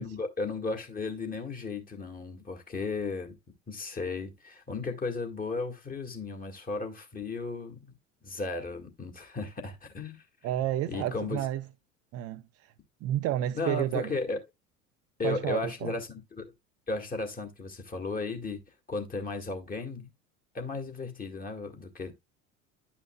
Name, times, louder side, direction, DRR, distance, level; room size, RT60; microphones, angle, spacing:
voice 1, 0.0-3.4 3.7-7.9 8.2-10.2 10.9-11.4 13.6-14.4 15.2-16.5 16.9-18.6 18.9-20.1 20.5-22.1, left 3 dB, 20° left, 1.8 m, -35 dB
voice 2, 10.4-11.6 12.1-12.7 13.0-14.2 15.2-15.9, right 12 dB, 40° right, 0.6 m, -31 dB
11.0 x 5.7 x 2.3 m
figure-of-eight pair, 70°, 39 cm